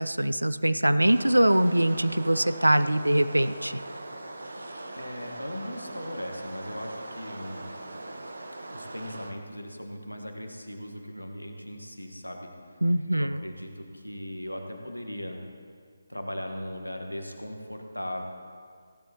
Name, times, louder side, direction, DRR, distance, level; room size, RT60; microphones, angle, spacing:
voice 1, 0.0-3.8 12.8-13.4, right 1 dB, 85° right, 13 dB, 0.4 m, -23 dB
sound 1, 1.0-9.3, right 2 dB, 65° right, 1.0 m, -41 dB
voice 2, 4.9-7.7 8.7-12.8 13.1-15.4 16.1-18.2, equal, 90° left, 3 dB, 1.3 m, -38 dB
15.5 x 11.0 x 2.9 m, 2.1 s
figure-of-eight pair, 150°, 0 cm